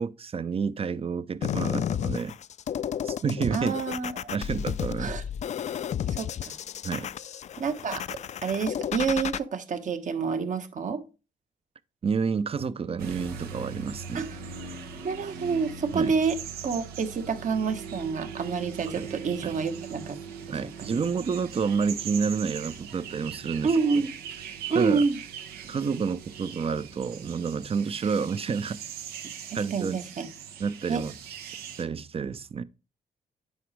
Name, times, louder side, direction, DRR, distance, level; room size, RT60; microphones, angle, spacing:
voice 1, 0.0-2.3 3.0-3.8 4.3-5.2 6.8-7.1 12.0-14.3 15.9-16.1 19.0-19.1 19.4-19.5 20.5-23.7 24.7-25.0 25.6-28.8 29.5-30.0 30.6-31.1 31.8-32.6, right 5 dB, 40° right, 0.6 m, -29 dB
sound 1, 1.4-9.4, left 9 dB, 50° left, 0.4 m, -32 dB
voice 2, 3.5-4.1 5.0-5.2 6.2-6.5 7.6-8.0 8.4-11.0 14.1-14.3 15.0-16.4 16.6-20.2 20.5-21.1 23.6-24.1 24.7-25.2 29.5-30.3 30.9-31.0, right 5 dB, 55° right, 1.3 m, -28 dB
sound 2, 13.0-31.8, right 7 dB, 90° right, 1.0 m, -40 dB
9.6 x 5.0 x 3.2 m
cardioid pair, 70°, 16 cm